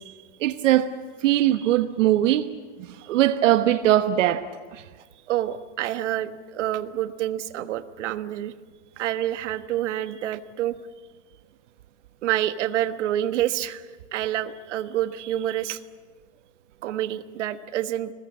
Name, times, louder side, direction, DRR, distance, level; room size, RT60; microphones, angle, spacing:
voice 1, 0.4-0.9 1.2-2.5 3.1-4.8, right 13 dB, 85° right, 1.2 m, -20 dB
voice 2, 5.3-8.5 9.0-10.8 12.2-13.8 14.1-15.8 16.8-18.1, right 12 dB, 70° right, 1.4 m, -27 dB
30.0 x 21.0 x 7.3 m
supercardioid pair, 180°, 37 cm